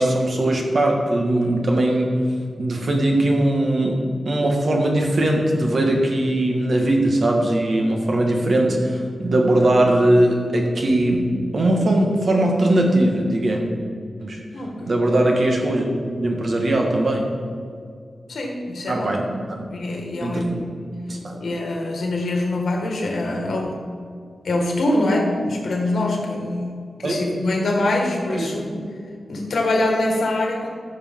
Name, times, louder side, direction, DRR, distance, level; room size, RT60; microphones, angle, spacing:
voice 1, 0.0-2.2 2.6-13.6 14.2-14.4 14.8-15.8 16.1-17.3 18.9-19.2 19.5-19.7 20.2-20.4 21.1-21.4 27.0-27.1 28.3-28.5, right 1 dB, 50° right, 1 dB, 1.5 m, -20 dB
voice 2, 14.5-14.9 18.3-19.2 19.7-20.6 21.4-23.8 24.4-26.7 27.0-28.8 29.3-30.7, left 2 dB, 75° left, 0 dB, 1.8 m, -24 dB
14.0 x 6.6 x 3.7 m, 2.2 s
wide cardioid pair, 155°, 0 cm